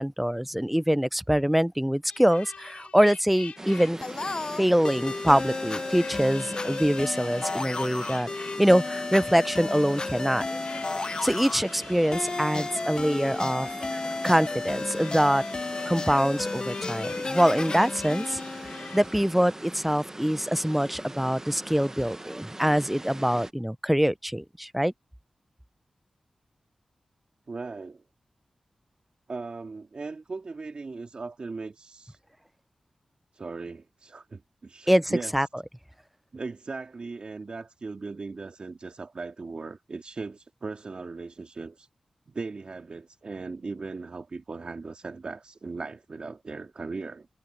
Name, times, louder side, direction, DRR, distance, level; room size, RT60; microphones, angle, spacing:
voice 1, 0.0-4.0 4.6-10.5 11.2-13.7 14.2-15.4 15.9-18.4 18.9-24.9 34.9-35.5, equal, 5° right, 0.5 m, -24 dB
sound 1, 2.1-19.0, left 6 dB, 80° left, 4.3 m, -47 dB
sound 2, 3.6-23.5, right 1 dB, 25° right, 1.1 m, -42 dB
sound 3, 4.0-19.5, left 3 dB, 40° left, 0.7 m, -33 dB
voice 2, 27.5-28.0 29.3-32.2 33.3-35.3 36.3-41.9 42.3-47.3, right 4 dB, 55° right, 2.1 m, -38 dB
cardioid pair, 45°, 2 cm